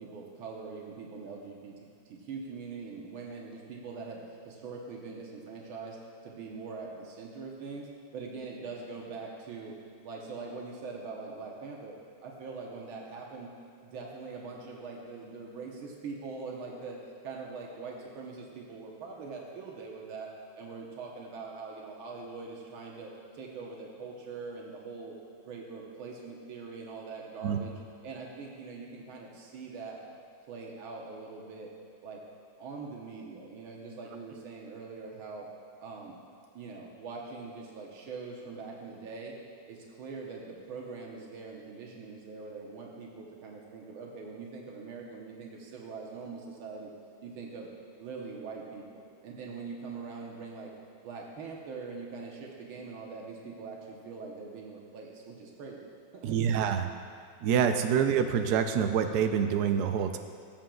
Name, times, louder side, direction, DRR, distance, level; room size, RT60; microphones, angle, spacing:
voice 1, 0.0-4.2 4.4-6.0 6.2-7.9 8.1-9.7 10.0-11.9 12.2-13.5 13.8-17.0 17.2-20.3 20.6-25.1 25.4-27.7 28.0-30.0 30.5-31.7 32.0-32.2 32.6-35.5 35.8-36.1 36.5-39.3 39.7-46.9 47.2-47.7 48.0-50.7 51.0-55.8 56.1-56.6, right 4 dB, 85° right, -1 dB, 1.8 m, -42 dB
voice 2, 56.2-56.9 57.4-60.2, right 7 dB, 70° right, 7 dB, 1.0 m, -26 dB
18.5 x 7.4 x 2.3 m, 2.2 s
omnidirectional pair, 2.2 m